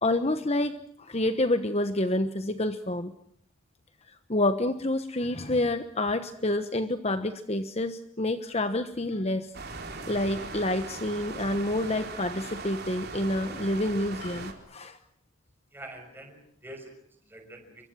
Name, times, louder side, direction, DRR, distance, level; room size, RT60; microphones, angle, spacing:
voice 1, 0.0-3.1 4.1-9.5 10.1-15.0, left 1 dB, 30° left, 10 dB, 1.2 m, -28 dB
sound 1, 9.5-14.5, right 3 dB, 45° right, 4.3 m, -39 dB
voice 2, 15.7-17.9, right 1 dB, 10° right, 5 dB, 6.2 m, -46 dB
29.5 x 24.5 x 6.3 m, 0.66 s
head